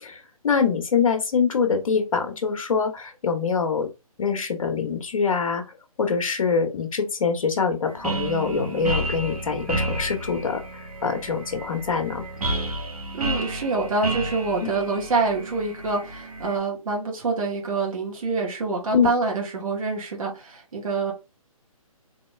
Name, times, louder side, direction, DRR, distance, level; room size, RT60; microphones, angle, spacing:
voice 1, 0.0-3.9 4.2-5.6 6.0-10.6 11.0-12.2 14.6-14.7 18.9-19.1, left 5 dB, 65° left, 5 dB, 1.2 m, -24 dB
sound 1, 7.9-16.6, right 1 dB, 85° right, 1.7 m, -31 dB
voice 2, 13.1-21.1, right 3 dB, 65° right, -1 dB, 2.0 m, -26 dB
4.1 x 3.2 x 3.3 m, 0.27 s
hypercardioid pair, 145°, 19 cm